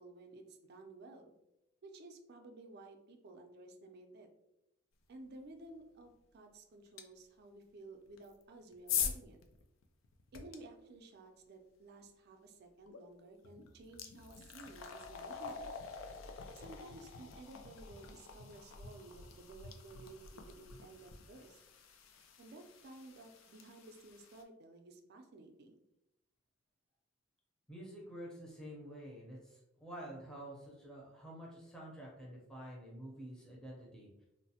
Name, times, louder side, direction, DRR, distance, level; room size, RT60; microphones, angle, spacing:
voice 1, 0.0-1.3 1.8-4.3 5.1-9.4 10.3-15.8 16.5-21.6 22.4-25.7, right 2 dB, 55° right, 4 dB, 0.4 m, -54 dB
sound 1, 7.0-7.1 8.1-10.6 12.9-13.0 13.4-24.4, left 7 dB, 85° left, 0.4 m, -44 dB
voice 2, 27.7-34.3, equal, 5° left, -4 dB, 0.6 m, -49 dB
3.0 x 2.0 x 2.7 m, 0.88 s
head